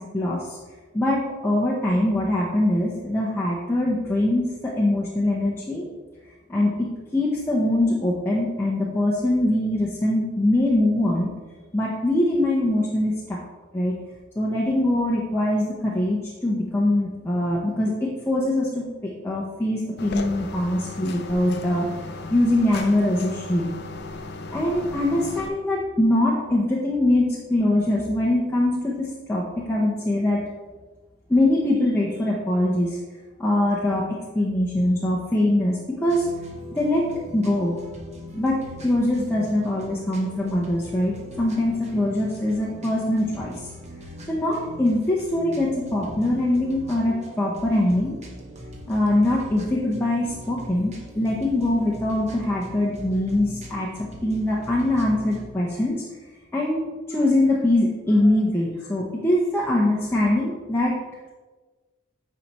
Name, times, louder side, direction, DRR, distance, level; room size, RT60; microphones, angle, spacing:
voice 1, 0.1-0.6 0.9-5.8 6.5-11.3 11.7-13.4 13.7-14.0 14.4-21.9 22.3-23.7 24.5-30.4 31.3-33.0 33.4-36.3 36.7-37.0 37.3-37.7 38.3-43.6 44.3-48.2 48.9-56.0 56.5-60.9, left 1 dB, 10° left, -5 dB, 0.7 m, -23 dB
sound 1, 20.0-25.5, left 3 dB, 50° left, 0.5 m, -36 dB
sound 2, 36.1-55.5, left 1 dB, 30° right, 0.9 m, -41 dB
9.3 x 4.1 x 3.0 m, 1.3 s
head